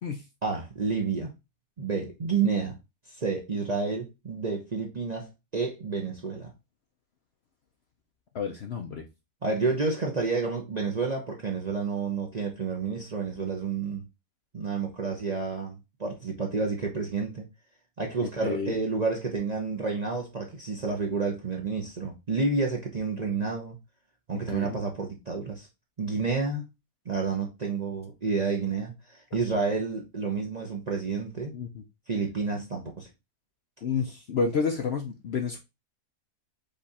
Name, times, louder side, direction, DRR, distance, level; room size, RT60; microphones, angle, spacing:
voice 1, 0.4-1.3 1.8-2.8 3.1-6.5 9.4-14.1 14.5-17.4 18.0-23.8 24.3-25.7 26.0-26.6 27.0-31.5 32.1-33.1, right 4 dB, 40° right, 0.6 m, -30 dB
voice 2, 8.3-9.1 18.4-18.8 24.5-24.8 31.5-31.8 33.8-35.6, left 5 dB, 60° left, 0.7 m, -30 dB
5.2 x 2.5 x 4.1 m
omnidirectional pair, 1.6 m